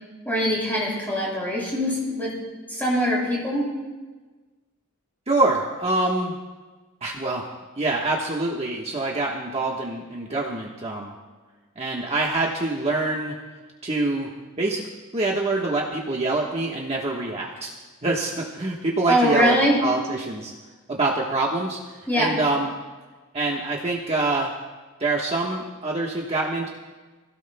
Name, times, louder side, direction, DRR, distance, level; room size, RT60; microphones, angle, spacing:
voice 1, 0.2-2.3 2.7-3.7 19.1-19.8 22.1-22.4, equal, 10° left, -5 dB, 6.3 m, -22 dB
voice 2, 5.3-6.3 7.0-7.4 7.8-11.1 11.8-13.3 13.8-14.3 14.6-14.8 15.1-17.7 18.0-20.5 20.9-21.8 22.1-22.7 23.3-24.5 25.0-26.7, right 2 dB, 30° right, -2 dB, 1.3 m, -25 dB
28.5 x 16.5 x 2.2 m, 1.3 s
head